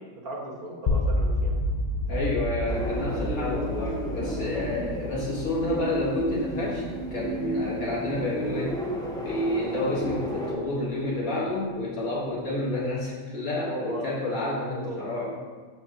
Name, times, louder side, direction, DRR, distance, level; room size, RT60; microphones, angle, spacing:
voice 1, 0.2-1.6 13.6-14.1 14.8-15.0, right 2 dB, 80° right, -3 dB, 2.2 m, -36 dB
sound 1, 0.9-10.9, left 1 dB, 50° left, 0.5 m, -31 dB
voice 2, 2.0-6.8 7.1-8.8 9.2-15.3, left 2 dB, 70° left, -5 dB, 2.1 m, -29 dB
sound 2, 2.7-10.5, right 1 dB, 5° left, 0.8 m, -33 dB
14.0 x 4.7 x 3.0 m, 1.5 s
omnidirectional pair, 1.5 m